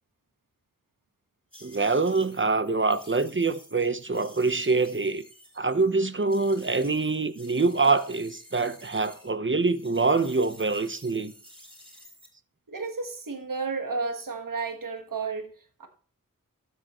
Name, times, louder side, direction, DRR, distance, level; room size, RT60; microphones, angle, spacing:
sound 1, 1.5-9.3 9.6-12.3, equal, 15° right, 3.6 m, -52 dB
voice 1, 1.6-5.2 5.6-11.3, right 3 dB, 35° right, 0.9 m, -25 dB
voice 2, 12.7-15.9, right 4 dB, 75° right, 1.5 m, -32 dB
12.5 x 7.7 x 3.1 m
wide cardioid pair, 45°, 33 cm